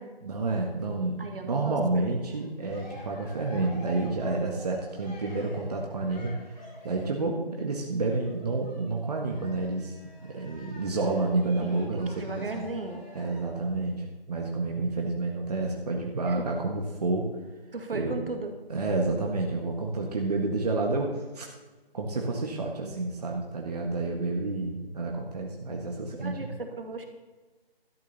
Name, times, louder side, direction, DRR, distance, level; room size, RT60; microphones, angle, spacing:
voice 1, 0.2-9.9 10.3-12.7 13.1-17.3 17.9-18.2 18.7-21.5 21.9-26.5, right 3 dB, 40° right, 0 dB, 1.6 m, -29 dB
voice 2, 1.2-2.1 11.5-13.0 16.3-16.5 17.7-18.6 22.8-23.0 26.1-27.1, right 3 dB, 65° right, 5 dB, 2.1 m, -37 dB
Cheering, 2.2-7.3 8.0-13.6, left 2 dB, 45° left, 4.0 m, -49 dB
12.5 x 6.8 x 6.9 m, 1.2 s
figure-of-eight pair, 165°, 30 cm